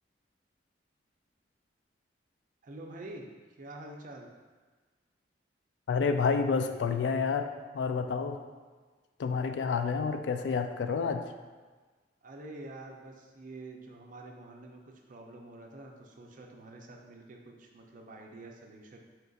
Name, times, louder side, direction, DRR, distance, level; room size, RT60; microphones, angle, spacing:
voice 1, 2.6-3.3 3.6-4.3 12.2-14.8 15.1-19.0, right 2 dB, 50° right, 1 dB, 0.5 m, -47 dB
voice 2, 5.9-8.4 9.2-11.2, left 5 dB, 75° left, 8 dB, 0.3 m, -29 dB
4.4 x 2.4 x 3.8 m, 1.4 s
head